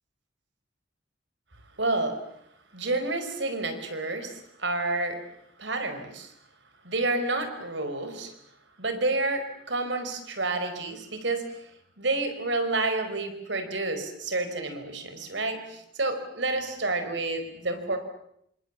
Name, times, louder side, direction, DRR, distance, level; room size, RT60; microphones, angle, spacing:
voice 1, 1.8-2.2 2.7-5.2 5.6-6.3 6.8-8.3 8.8-11.6 12.0-18.0, right 2 dB, 70° right, 8 dB, 4.8 m, -29 dB
28.5 x 26.0 x 7.5 m, 0.74 s
head